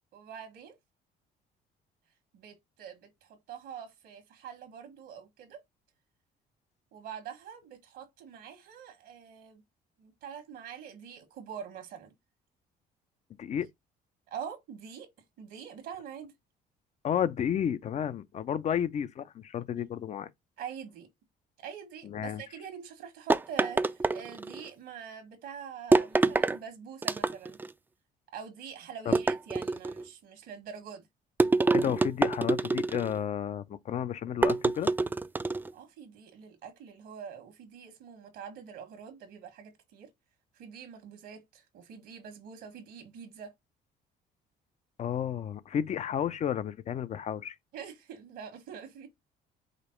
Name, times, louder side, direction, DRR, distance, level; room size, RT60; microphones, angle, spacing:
voice 1, 0.1-0.8 2.3-5.6 6.9-9.6 10.0-12.1 14.3-15.1 15.4-16.3 18.7-18.8 20.6-21.1 21.6-27.6 28.3-31.1 35.7-40.1 40.5-43.5 47.7-49.1, right 7 dB, 75° right, 1.4 m, -45 dB
voice 2, 17.0-20.3 22.0-22.4 29.1-29.2 31.7-34.9 45.0-47.6, left 9 dB, 40° left, 0.5 m, -32 dB
sound 1, 23.3-24.7 25.9-26.6 27.0-27.7 29.1-30.0 31.4-33.2 34.4-35.7, right 3 dB, 10° right, 0.4 m, -26 dB
5.1 x 2.0 x 4.3 m
cardioid pair, 110°, 17 cm